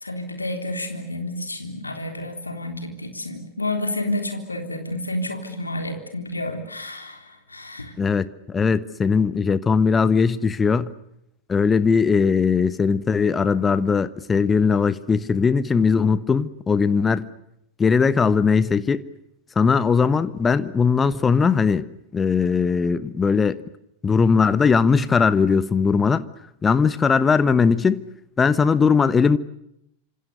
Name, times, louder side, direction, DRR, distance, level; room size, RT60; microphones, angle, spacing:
voice 1, 0.0-7.9, left 1 dB, 80° left, 3.6 m, -30 dB
voice 2, 8.0-10.9 11.5-17.3 17.8-19.0 19.6-21.8 22.1-23.6 24.0-26.2 26.6-28.0 28.4-29.4, left 5 dB, 15° left, 1.2 m, -19 dB
28.0 x 27.0 x 6.8 m
figure-of-eight pair, 90°, 0 cm